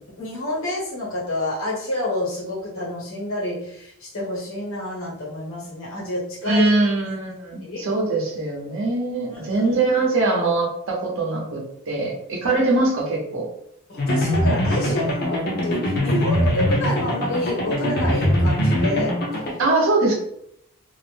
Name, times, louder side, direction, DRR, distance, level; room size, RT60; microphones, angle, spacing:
voice 1, 0.2-6.7 7.6-7.9 9.3-9.8 13.9-19.2 19.5-19.6, left 1 dB, 65° left, -5 dB, 1.1 m, -28 dB
voice 2, 6.4-13.4 19.6-20.1, right 2 dB, 60° right, -1 dB, 0.7 m, -22 dB
sound 1, 14.0-19.5, equal, 45° left, 0.6 m, -22 dB
2.4 x 2.1 x 3.2 m, 0.75 s
head